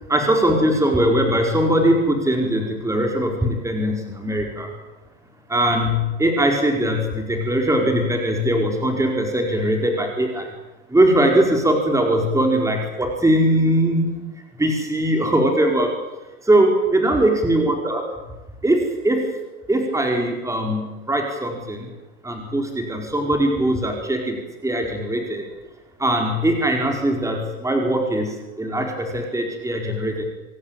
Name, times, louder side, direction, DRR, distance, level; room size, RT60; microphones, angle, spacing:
voice 1, 0.1-4.7 5.5-10.5 10.9-14.2 14.6-15.9 16.5-18.1 18.6-19.2 19.7-21.9 22.2-24.4 24.6-25.4 26.0-30.2, right 1 dB, 5° right, 2 dB, 4.8 m, -20 dB
28.0 x 17.0 x 9.0 m, 1.1 s
hypercardioid pair, 90°, 41 cm